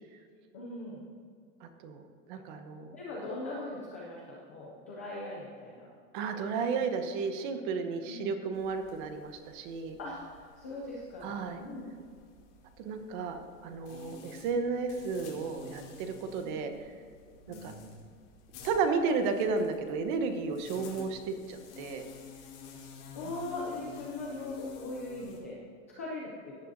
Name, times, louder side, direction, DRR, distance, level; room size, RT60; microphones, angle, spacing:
voice 1, 0.5-1.0 2.9-5.9 8.1-8.3 10.0-10.1 10.6-11.9 16.4-16.5 17.5-17.7 23.1-25.6 26.0-26.6, left 2 dB, 10° left, -4 dB, 0.3 m, -40 dB
voice 2, 1.6-2.0 2.3-2.9 6.1-10.0 11.2-11.6 12.8-16.7 17.5-17.7 18.6-22.0, right 4 dB, 35° right, 7 dB, 0.9 m, -33 dB
sound 1, 8.5-25.4, left 4 dB, 45° left, 2.6 m, -50 dB
16.5 x 9.9 x 2.6 m, 2.1 s
supercardioid pair, 165°, 41 cm